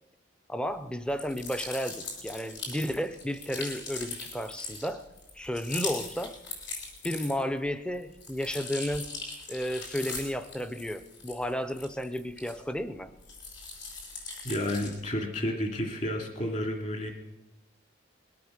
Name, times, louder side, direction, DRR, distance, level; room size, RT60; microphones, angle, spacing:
voice 1, 0.5-5.0 5.3-6.4 7.0-9.1 9.5-13.1, equal, 5° left, 11 dB, 0.6 m, -32 dB
sound 1, 1.1-7.6 7.9-12.8 13.2-15.1, left 3 dB, 65° left, 5.0 m, -40 dB
voice 2, 14.4-17.1, left 1 dB, 40° left, 3 dB, 2.6 m, -31 dB
21.0 x 8.6 x 6.5 m, 0.98 s
head